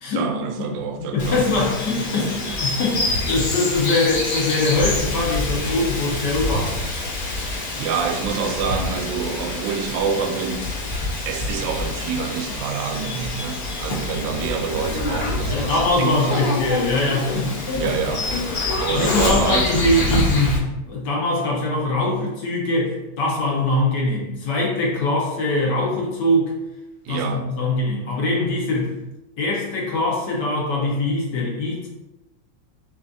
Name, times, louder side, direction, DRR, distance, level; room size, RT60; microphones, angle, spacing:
voice 1, 0.1-1.4 2.1-2.4 7.8-10.7 11.2-16.5 17.7-18.3 18.7-19.9 27.0-27.5, right 6 dB, 80° right, 5 dB, 1.3 m, -27 dB
voice 2, 1.1-2.3 2.6-6.8 15.5-17.5 17.8-17.9 18.6-26.5 27.1-28.9 29.4-31.9, left 2 dB, 65° left, -3 dB, 1.6 m, -22 dB
Bird vocalization bird call bird song, 1.2-20.6, left 2 dB, 40° left, 1.1 m, -26 dB
7.0 x 2.6 x 2.7 m, 0.95 s
omnidirectional pair, 2.0 m